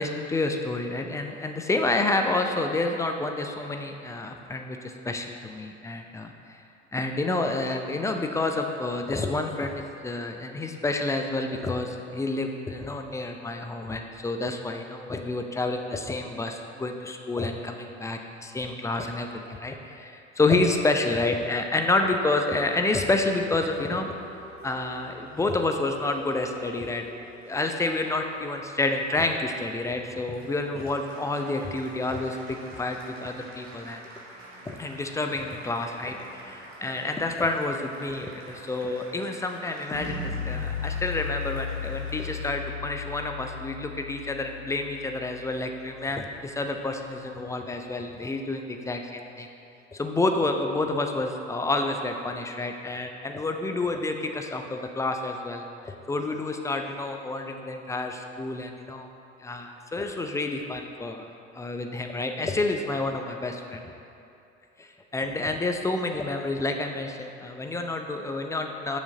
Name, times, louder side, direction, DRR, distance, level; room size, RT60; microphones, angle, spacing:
voice 1, 0.0-6.6 6.9-24.1 24.6-27.0 27.5-34.0 34.7-49.5 49.9-59.1 59.4-63.8 64.8-69.0, left 2 dB, 10° left, 4 dB, 0.5 m, -29 dB
Applause, 22.5-42.5, right 1 dB, 35° right, 1.7 m, -48 dB
sound 1, 39.9-45.9, left 6 dB, 70° left, 1.8 m, -35 dB
6.4 x 6.4 x 4.9 m, 2.7 s
figure-of-eight pair, 65°, 36 cm